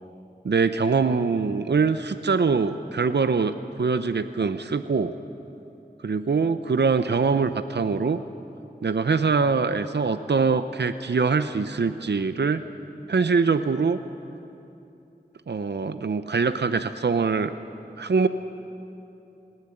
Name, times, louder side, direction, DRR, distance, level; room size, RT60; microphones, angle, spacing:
voice 1, 0.4-5.1 6.0-8.2 8.8-12.6 13.1-14.0 15.5-17.5 18.0-18.3, right 5 dB, 85° right, 11 dB, 0.7 m, -23 dB
20.0 x 17.0 x 9.9 m, 2.8 s
wide cardioid pair, 40°, 17 cm